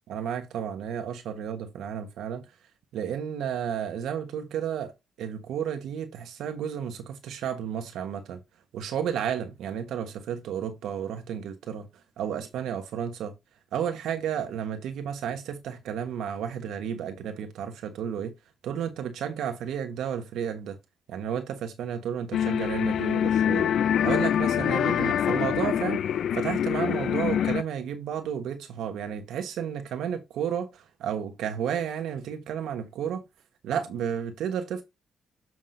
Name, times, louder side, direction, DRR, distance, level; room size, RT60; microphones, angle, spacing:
voice 1, 0.1-2.4 2.9-4.9 5.2-8.4 8.7-11.9 12.2-13.3 13.7-18.3 18.6-20.8 21.1-23.7 24.0-26.0 26.3-33.2 33.6-34.8, right 8 dB, 80° right, 1.2 m, -32 dB
sound 1, 22.3-27.6, left 9 dB, 60° left, 0.3 m, -25 dB
7.7 x 5.9 x 2.6 m
cardioid pair, 125°, 0 cm